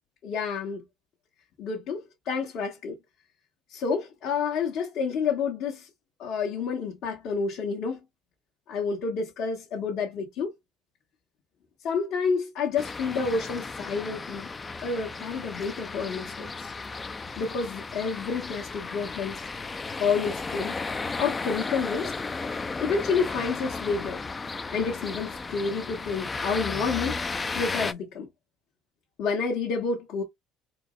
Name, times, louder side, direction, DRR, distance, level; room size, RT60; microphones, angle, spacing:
voice 1, 0.2-0.8 1.6-3.0 3.7-5.9 6.2-8.0 8.7-10.5 11.8-14.5 14.8-16.7 17.4-19.4 20.0-20.8 21.2-22.1 22.8-24.2 24.7-27.2 27.5-28.3 29.2-30.2, left 5 dB, 60° left, 1.3 m, -29 dB
sound 1, 12.8-27.9, left 4 dB, 20° left, 0.4 m, -34 dB
4.4 x 2.1 x 3.8 m
cardioid pair, 115°, 0 cm